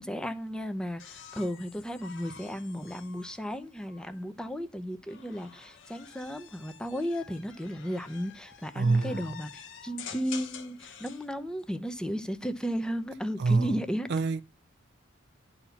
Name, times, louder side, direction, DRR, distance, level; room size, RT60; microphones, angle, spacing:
voice 1, 0.0-14.1, equal, 5° left, 0.7 m, -34 dB
sound 1, 1.0-4.3 5.1-11.3 12.7-13.3, left 8 dB, 65° left, 1.0 m, -48 dB
voice 2, 8.8-9.3 13.4-13.7 14.1-14.4, right 3 dB, 55° right, 0.4 m, -25 dB
11.5 x 4.2 x 7.1 m
head